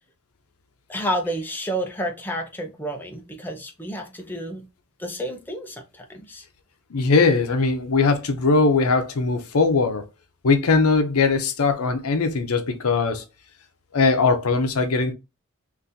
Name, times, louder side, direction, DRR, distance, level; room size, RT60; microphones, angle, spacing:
voice 1, 0.9-4.6 5.0-6.4, equal, 10° left, 0.6 m, -30 dB
voice 2, 6.9-10.1 10.4-13.2 13.9-15.1, left 4 dB, 75° left, 0.6 m, -20 dB
3.9 x 2.6 x 2.6 m
head